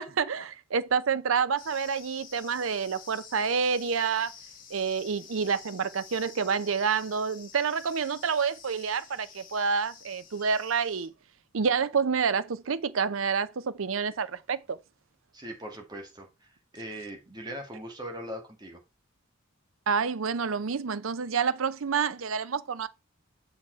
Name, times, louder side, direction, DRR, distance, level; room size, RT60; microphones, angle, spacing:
voice 1, 0.0-4.3 4.7-11.1 11.5-14.8 19.9-22.9, right 6 dB, 80° right, 0.6 m, -28 dB
sound 1, 1.6-11.1, left 6 dB, 45° left, 1.8 m, -50 dB
voice 2, 15.3-18.8, equal, 20° right, 1.8 m, -40 dB
7.0 x 5.0 x 4.5 m
head